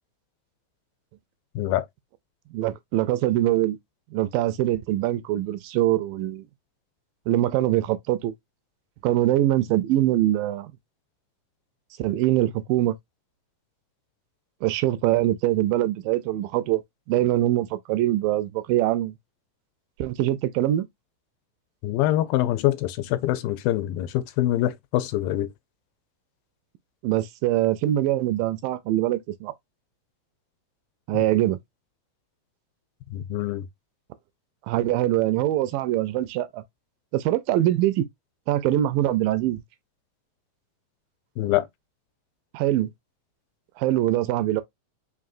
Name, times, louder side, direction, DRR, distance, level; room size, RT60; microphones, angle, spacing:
voice 1, 1.6-1.9 21.8-25.5 31.1-31.2 33.1-33.7 41.4-41.7, left 14 dB, 85° left, 2.3 m, -25 dB
voice 2, 2.5-3.8 4.1-6.5 7.3-8.3 9.0-10.7 12.0-13.0 14.6-16.8 17.1-19.1 20.0-20.9 27.0-29.5 31.1-31.6 34.7-36.6 37.1-38.1 38.5-39.6 42.5-42.9 43.8-44.6, right 14 dB, 80° right, 2.2 m, -23 dB
5.7 x 2.6 x 2.4 m
omnidirectional pair, 4.0 m